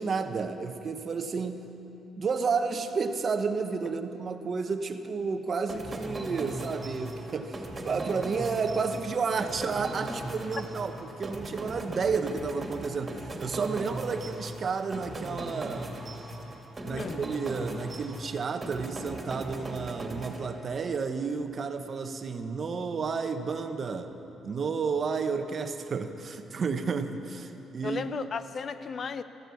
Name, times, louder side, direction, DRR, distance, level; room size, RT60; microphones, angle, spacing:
voice 1, 0.0-1.7 2.2-16.0 16.8-24.1 24.4-28.2, right 5 dB, 45° right, 7 dB, 1.1 m, -31 dB
sound 1, 5.7-21.0, right 1 dB, 25° right, 2.7 m, -39 dB
voice 2, 16.9-17.2 27.8-29.2, left 5 dB, 50° left, 12 dB, 0.6 m, -34 dB
14.5 x 13.5 x 7.1 m, 3.0 s
cardioid pair, 90°, 0 cm